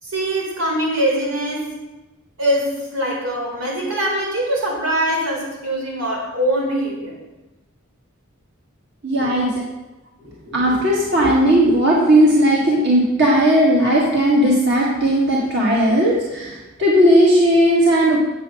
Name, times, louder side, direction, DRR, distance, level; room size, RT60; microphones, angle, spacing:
voice 1, 0.0-1.8 2.4-7.2, right 1 dB, 85° right, -2 dB, 4.0 m, -22 dB
voice 2, 9.0-9.6 10.5-18.2, equal, 55° right, -4 dB, 1.9 m, -16 dB
9.7 x 7.5 x 6.3 m, 1.1 s
head